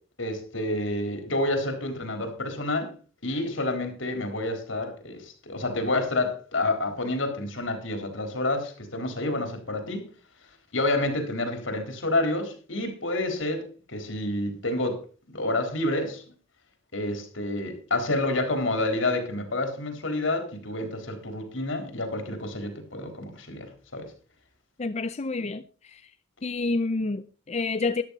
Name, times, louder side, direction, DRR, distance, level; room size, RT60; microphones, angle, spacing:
voice 1, 0.2-2.9 3.2-10.0 10.7-13.6 13.9-15.0 15.3-16.2 16.9-24.1, left 2 dB, 80° left, 3.9 m, -29 dB
voice 2, 24.8-26.1 26.4-28.0, left 3 dB, 35° left, 0.5 m, -29 dB
13.5 x 11.5 x 4.1 m
head